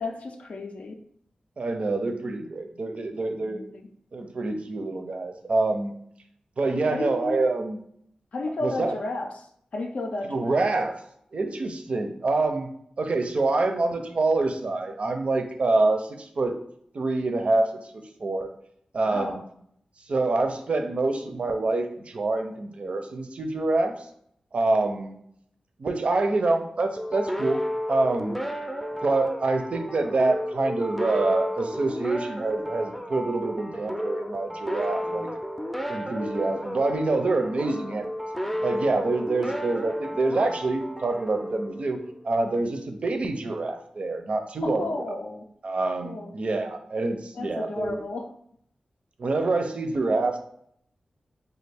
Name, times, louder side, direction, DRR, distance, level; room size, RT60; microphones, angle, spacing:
voice 1, 0.0-1.0 3.2-3.9 6.9-7.4 8.3-9.3 9.7-10.6 19.0-19.4 35.0-35.3 44.6-45.5 46.0-46.3 47.4-48.3, left 2 dB, 70° left, 4 dB, 0.4 m, -33 dB
voice 2, 1.6-3.6 4.1-5.9 6.6-7.8 8.6-9.0 10.3-11.0 11.3-12.7 13.0-16.6 16.9-18.5 18.9-19.4 20.1-24.1 24.5-25.2 25.8-27.6 27.9-28.4 29.0-35.3 35.9-38.1 38.6-42.0 42.2-45.2 45.6-48.0 49.2-50.4, right 3 dB, 60° right, 6 dB, 0.4 m, -26 dB
sound 1, 27.0-42.3, equal, ahead, 0.4 m, -33 dB
3.3 x 2.3 x 3.3 m, 0.68 s
cardioid pair, 60°, 2 cm